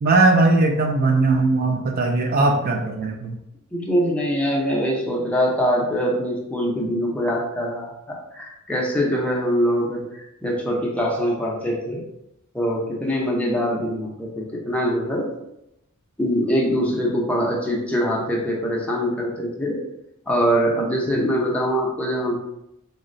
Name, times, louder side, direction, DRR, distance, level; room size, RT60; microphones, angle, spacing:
voice 1, 0.0-3.4, right 2 dB, 45° right, 3 dB, 0.3 m, -19 dB
voice 2, 3.7-12.0 12.5-15.3 16.2-19.8 20.3-22.4, equal, 5° left, -3 dB, 0.6 m, -23 dB
3.7 x 2.1 x 2.5 m, 0.83 s
head